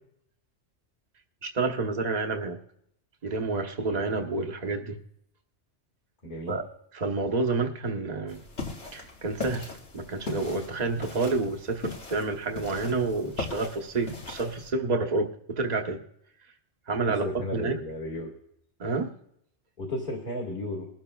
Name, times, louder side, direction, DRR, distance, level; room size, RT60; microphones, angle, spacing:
voice 1, 1.4-2.6 3.2-5.0 6.5-6.6 6.9-8.4 8.9-16.0 16.9-17.2 17.5-17.8 18.8-19.1, right 3 dB, 40° right, 3 dB, 1.2 m, -29 dB
voice 2, 6.2-6.6 17.1-18.3 19.8-20.9, left 1 dB, 45° left, -2 dB, 2.1 m, -34 dB
sound 1, 8.3-14.7, left 3 dB, 70° left, 2.0 m, -39 dB
21.0 x 12.0 x 2.3 m, 0.71 s
omnidirectional pair, 1.2 m